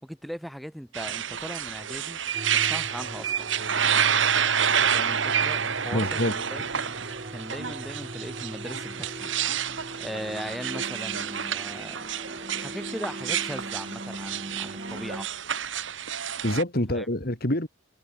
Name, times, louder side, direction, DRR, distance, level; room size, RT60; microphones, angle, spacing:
voice 1, 0.0-2.2 2.5-3.5 4.7-7.0 7.3-9.3 10.0-12.1 12.6-15.3 16.9-17.1, equal, ahead, 3.9 m, -39 dB
sound 1, 0.9-16.6, right 8 dB, 70° right, 2.0 m, -29 dB
sound 2, 2.3-15.3, right 1 dB, 35° right, 3.3 m, -40 dB
voice 2, 5.9-6.3 16.4-17.7, left 1 dB, 50° left, 3.8 m, -26 dB
head